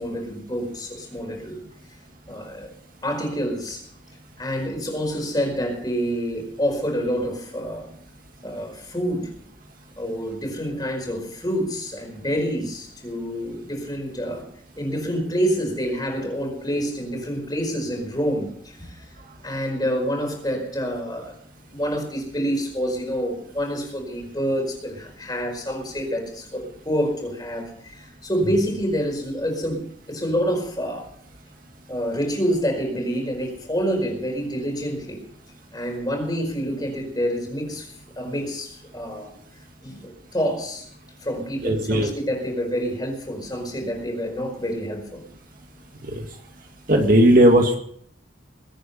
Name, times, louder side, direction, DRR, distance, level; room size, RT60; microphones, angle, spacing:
voice 1, 0.0-1.6 2.3-2.7 3.0-3.8 4.4-7.9 8.4-9.3 10.0-14.5 14.8-19.0 19.4-21.3 21.7-31.1 31.9-35.2 35.7-37.9 38.2-39.3 39.8-40.9 41.2-45.2, equal, 20° left, 2 dB, 4.8 m, -27 dB
voice 2, 41.6-42.1 46.0-46.3 46.9-47.8, right 1 dB, 45° right, 3 dB, 2.0 m, -16 dB
22.0 x 9.4 x 5.5 m, 0.63 s
head